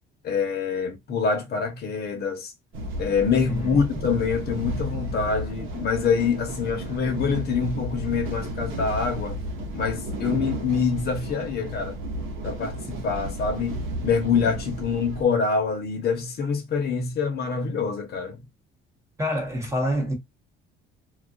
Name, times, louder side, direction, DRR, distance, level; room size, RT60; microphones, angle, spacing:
voice 1, 0.2-2.5 3.0-9.4 9.7-12.0 12.4-18.4, left 5 dB, 50° left, 0.8 m, -25 dB
sound 1, 2.7-15.2, right 1 dB, 85° right, 0.8 m, -33 dB
voice 2, 3.5-3.8 19.2-20.1, equal, 15° right, 0.9 m, -27 dB
2.3 x 2.3 x 2.4 m
cardioid pair, 135°, 20 cm